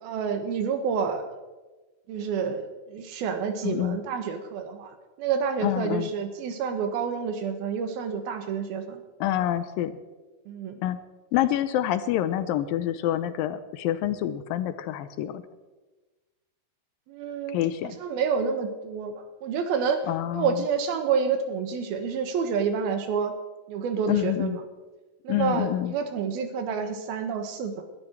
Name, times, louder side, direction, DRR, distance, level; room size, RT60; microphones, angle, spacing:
voice 1, 0.0-1.2 2.1-9.0 10.5-10.7 17.1-17.6 17.8-20.0 20.3-23.3 23.7-24.6 25.2-27.8, right 6 dB, 90° right, 7 dB, 3.3 m, -28 dB
voice 2, 3.6-4.0 5.6-6.1 9.2-10.0 10.8-11.0 11.3-15.4 17.5-18.0 20.1-20.6 24.1-24.6 25.3-25.9, left 12 dB, 80° left, 12 dB, 2.4 m, -27 dB
21.0 x 11.5 x 4.5 m, 1.2 s
omnidirectional pair, 4.2 m